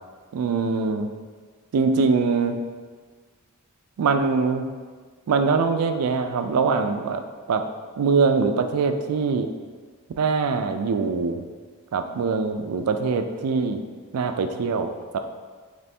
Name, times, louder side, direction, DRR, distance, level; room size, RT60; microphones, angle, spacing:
voice 1, 0.3-1.1 1.7-2.6 4.0-4.6 5.3-7.2 7.5-7.6 8.0-9.5 10.2-11.4 11.9-13.8 14.1-15.2, right 4 dB, 90° right, 7 dB, 0.4 m, -23 dB
3.3 x 3.0 x 4.3 m, 1.5 s
head